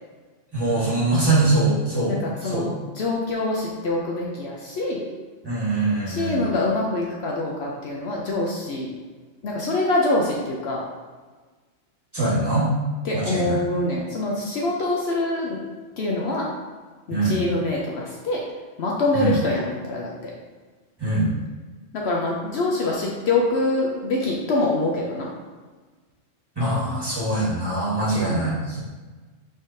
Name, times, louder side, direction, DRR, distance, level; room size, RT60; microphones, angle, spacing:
voice 1, 0.5-2.2 2.4-2.6 5.4-6.4 12.1-12.7 13.1-13.6 17.1-17.4 19.1-19.4 21.0-21.3 26.5-28.8, right 2 dB, 20° right, -8 dB, 1.3 m, -23 dB
voice 2, 2.0-5.0 6.1-8.9 9.4-10.8 13.0-15.6 16.0-16.5 17.1-18.4 18.8-20.3 21.9-25.3 28.2-28.4, left 2 dB, 65° left, -2 dB, 0.8 m, -25 dB
5.3 x 3.6 x 2.6 m, 1.3 s
omnidirectional pair, 1.3 m